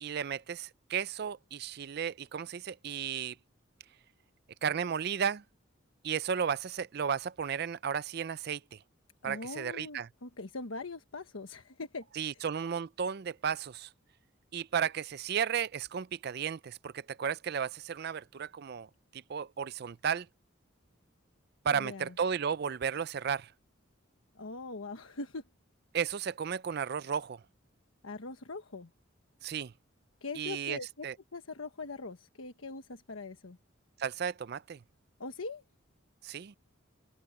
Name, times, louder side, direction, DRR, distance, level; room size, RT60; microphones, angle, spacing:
voice 1, 0.0-3.4 4.6-5.4 6.0-8.8 9.2-10.1 12.2-13.9 14.5-18.9 19.1-20.3 21.6-23.5 25.9-27.4 29.4-29.7 30.4-31.1 34.0-34.8 36.2-36.6, right 7 dB, 50° right, 0.4 m, -34 dB
voice 2, 9.2-12.4 21.7-22.1 24.3-25.4 28.0-28.9 30.2-31.1 31.3-33.6 35.2-35.6, left 3 dB, 85° left, 1.2 m, -42 dB
head